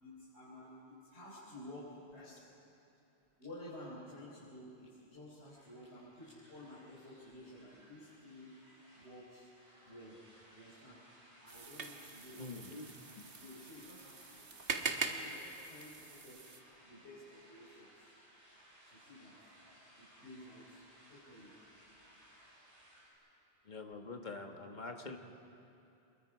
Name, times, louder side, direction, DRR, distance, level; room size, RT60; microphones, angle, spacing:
voice 1, 0.0-2.5 3.4-8.5 8.9-9.5 9.8-10.2 10.5-11.0 11.4-12.6 13.4-15.4 15.7-16.4 16.8-17.9 18.9-19.3 20.0-20.8 21.1-21.5, left 1 dB, 80° left, -8 dB, 4.3 m, -53 dB
sound 1, 5.4-23.1, equal, 40° right, 7.4 m, -62 dB
sound 2, 11.5-16.6, right 4 dB, 60° right, 1.5 m, -42 dB
voice 2, 12.4-12.9 13.2-13.3 23.6-25.2, left 3 dB, 45° left, 4 dB, 1.5 m, -45 dB
26.0 x 22.0 x 4.9 m, 2.7 s
omnidirectional pair, 1.1 m